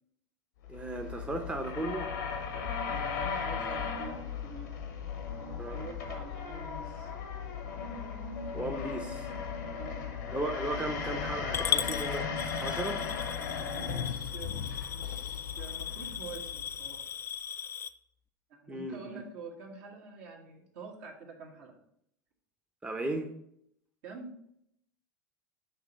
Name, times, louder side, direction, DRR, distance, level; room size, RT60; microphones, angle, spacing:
sound 1, 0.6-17.0, left 6 dB, 75° left, 0.9 m, -37 dB
voice 1, 0.7-2.1 2.5-2.7 5.6-5.8 8.5-9.3 10.3-12.3 12.6-13.0 18.7-19.2 22.8-23.3, right 2 dB, 10° right, 4 dB, 0.7 m, -36 dB
sound 2, 2.6-9.0 9.4-9.5 11.0-13.5 14.4-17.2, left 11 dB, 45° left, 0.7 m, -47 dB
voice 2, 2.8-4.8 5.4-7.1 9.8-10.0 13.6-17.1 18.5-21.8 24.0-24.3, right 4 dB, 65° right, 0 dB, 1.4 m, -47 dB
Coin (dropping) / Glass, 11.5-17.9, left 8 dB, 25° left, 0.3 m, -37 dB
6.1 x 3.0 x 5.2 m, 0.73 s
hypercardioid pair, 80°, 10 cm